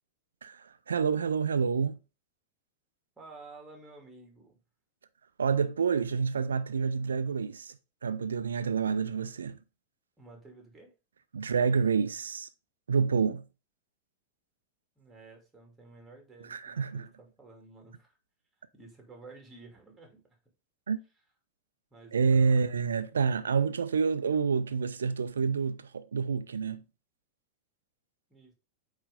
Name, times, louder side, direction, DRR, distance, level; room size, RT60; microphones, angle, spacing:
voice 1, 0.4-2.0 5.4-7.8 8.0-9.6 11.3-12.5 12.9-13.4 16.5-17.1 20.9-21.0 22.1-26.8, right 5 dB, 75° right, 0.5 m, -28 dB
voice 2, 3.2-4.6 10.2-10.9 15.0-18.2 18.7-20.2 21.9-22.6 28.3-28.5, right 3 dB, 10° right, 2.5 m, -52 dB
8.6 x 3.2 x 3.8 m
figure-of-eight pair, 90°, 0 cm